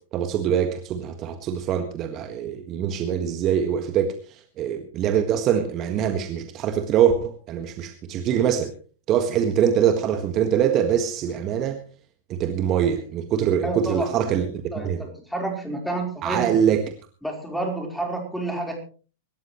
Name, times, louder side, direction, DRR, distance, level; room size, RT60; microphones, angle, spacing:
voice 1, 0.1-8.7 9.1-11.8 12.3-14.5 14.8-15.0 16.2-16.8, right 9 dB, 35° right, 7 dB, 1.7 m, -23 dB
voice 2, 13.6-14.3 14.7-16.5 17.2-18.8, right 2 dB, ahead, 3 dB, 4.4 m, -29 dB
25.0 x 13.5 x 3.2 m, 0.39 s
figure-of-eight pair, 100°, 0 cm